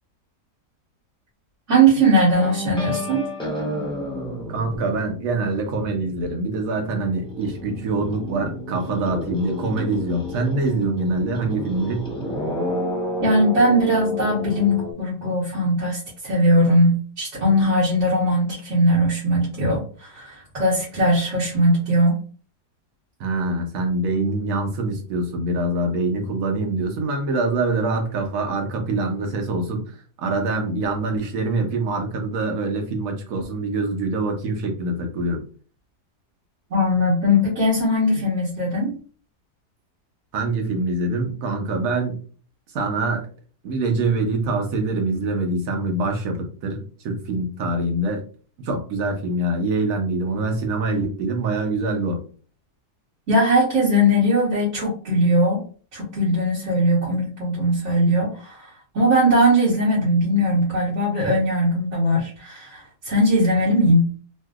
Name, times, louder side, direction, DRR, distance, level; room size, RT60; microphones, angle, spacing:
voice 1, 1.7-3.3 13.2-22.2 36.7-38.9 53.3-55.6 55.9-64.1, equal, 45° right, -8 dB, 1.4 m, -20 dB
sound 1, 2.3-6.4 6.7-14.9, equal, 5° left, 0.3 m, -31 dB
voice 2, 4.5-12.1 23.2-35.4 40.3-42.2 42.7-43.2 43.6-48.2 48.6-52.2, right 2 dB, 60° right, 3 dB, 1.1 m, -24 dB
3.1 x 2.7 x 2.3 m, 0.41 s
omnidirectional pair, 1.7 m